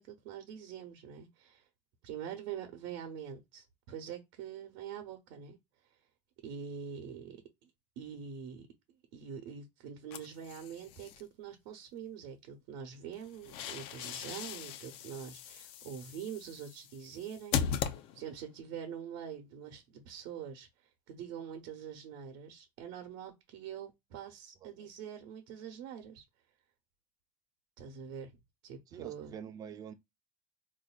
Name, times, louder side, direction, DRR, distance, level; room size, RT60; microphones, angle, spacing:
voice 1, 0.0-1.7 2.0-5.6 6.4-7.7 8.0-8.7 9.1-26.2 27.8-28.3 28.6-29.3, right 8 dB, 80° right, 0.8 m, -45 dB
sound 1, 10.1-11.2 13.1-18.5, left 8 dB, 65° left, 0.5 m, -39 dB
voice 2, 28.9-29.9, right 8 dB, 40° right, 0.4 m, -46 dB
4.1 x 2.6 x 2.2 m
cardioid pair, 140°, 10 cm